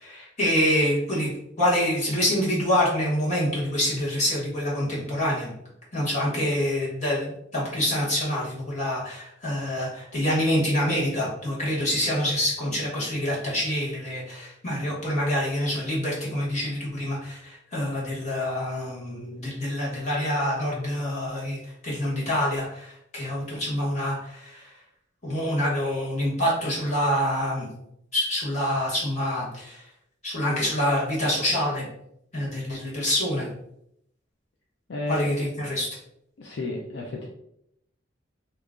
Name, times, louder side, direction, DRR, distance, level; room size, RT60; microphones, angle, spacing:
voice 1, 0.0-5.5 5.9-24.7 25.2-27.7 28.1-29.9 30.2-31.8 32.3-33.5 35.1-35.9, equal, 40° left, -6 dB, 1.4 m, -26 dB
voice 2, 34.9-35.3 36.4-37.3, left 2 dB, 65° left, -1 dB, 0.5 m, -32 dB
2.9 x 2.4 x 3.6 m, 0.76 s
head